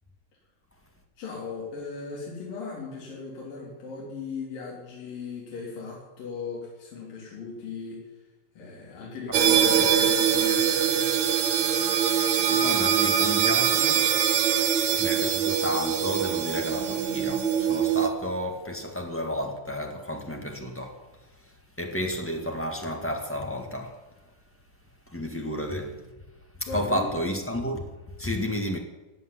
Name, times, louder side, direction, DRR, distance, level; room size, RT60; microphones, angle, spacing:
voice 1, 1.2-8.3 8.5-11.1 25.4-25.5 25.9-26.2 26.7-27.1, left 4 dB, 80° left, 5.1 m, -38 dB
sound 1, 9.3-18.1, right 8 dB, 65° right, 2.4 m, -23 dB
voice 2, 9.5-9.9 11.9-14.1 14.9-21.0 21.8-23.9 25.1-26.0 26.7-27.9 28.2-28.8, equal, 10° left, 0.7 m, -32 dB
16.0 x 8.6 x 9.9 m
omnidirectional pair, 3.9 m